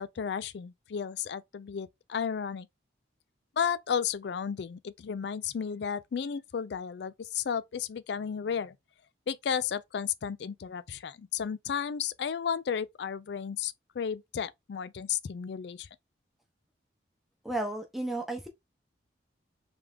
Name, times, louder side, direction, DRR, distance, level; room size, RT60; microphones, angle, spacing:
voice 1, 0.0-2.7 3.6-8.8 9.3-15.9, left 7 dB, 65° left, 0.3 m, -33 dB
voice 2, 17.4-18.5, right 2 dB, ahead, 0.8 m, -33 dB
3.5 x 3.4 x 3.4 m
head